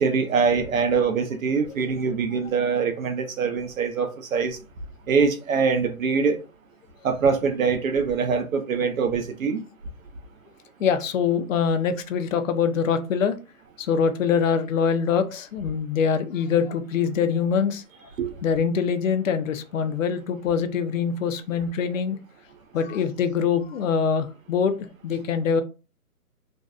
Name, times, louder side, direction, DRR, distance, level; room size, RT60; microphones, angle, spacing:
voice 1, 0.0-4.6 5.1-6.4 7.0-9.6 18.2-18.3, right 5 dB, 65° right, 0.6 m, -23 dB
voice 2, 10.8-13.4 13.8-17.8 18.4-22.2 22.7-24.8 25.0-25.6, left 6 dB, 60° left, 0.5 m, -24 dB
2.5 x 2.2 x 2.3 m
hypercardioid pair, 170°, 45 cm